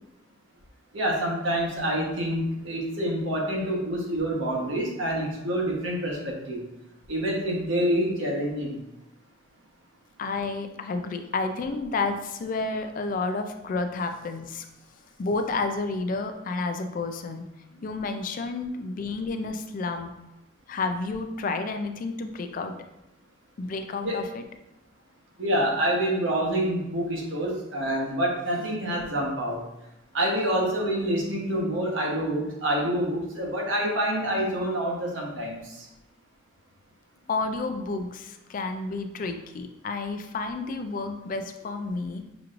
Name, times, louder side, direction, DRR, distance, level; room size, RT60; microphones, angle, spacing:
voice 1, 0.9-6.6 7.1-8.8 24.0-24.2 25.4-29.6 30.1-35.9, right 1 dB, 70° right, -1 dB, 1.1 m, -27 dB
voice 2, 10.2-14.7 15.2-17.5 17.7-20.1 20.7-22.8 23.6-24.4 37.3-42.2, left 3 dB, 40° left, 7 dB, 0.3 m, -30 dB
6.0 x 3.0 x 2.5 m, 0.91 s
head